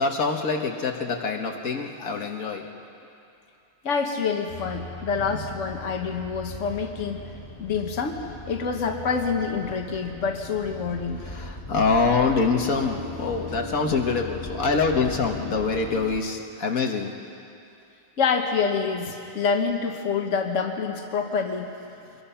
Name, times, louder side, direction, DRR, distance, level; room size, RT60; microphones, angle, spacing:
voice 1, 0.0-2.7 11.2-17.1, left 4 dB, 80° left, 2 dB, 1.8 m, -25 dB
voice 2, 3.8-7.2 7.6-8.2 8.5-11.2 18.2-21.7, left 5 dB, 60° left, 3 dB, 1.6 m, -27 dB
sound 1, 4.5-16.2, left 2 dB, 40° left, 2.0 m, -39 dB
24.5 x 22.0 x 5.7 m, 2.6 s
omnidirectional pair, 1.4 m